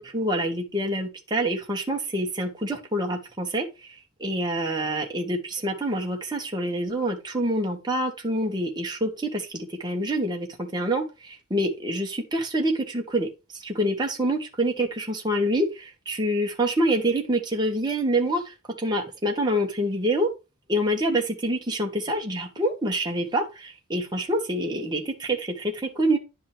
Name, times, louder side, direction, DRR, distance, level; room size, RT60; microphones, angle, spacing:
voice 1, 0.0-3.9 4.2-20.3 20.7-26.2, right 1 dB, 20° right, 1 dB, 1.6 m, -26 dB
10.5 x 5.4 x 3.4 m, 0.27 s
head